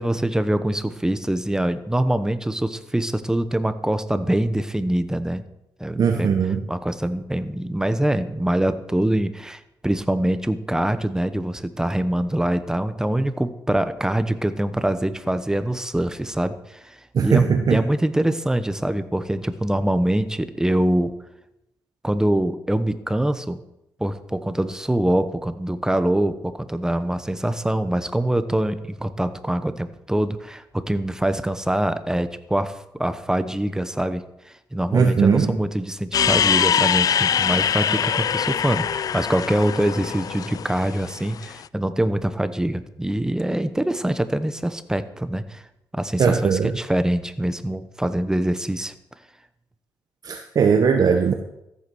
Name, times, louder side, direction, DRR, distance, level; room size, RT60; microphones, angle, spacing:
voice 1, 0.0-5.4 5.8-6.3 6.7-21.1 22.0-23.6 24.0-45.6 45.9-48.9, right 1 dB, 10° right, 11 dB, 1.0 m, -24 dB
voice 2, 6.0-6.6 17.1-17.8 34.9-35.6 46.2-46.7 50.2-51.3, right 6 dB, 55° right, 5 dB, 1.1 m, -19 dB
sound 1, 36.1-41.5, left 8 dB, 50° left, 0.3 m, -23 dB
14.0 x 8.5 x 6.2 m, 0.87 s
cardioid pair, 90°, 8 cm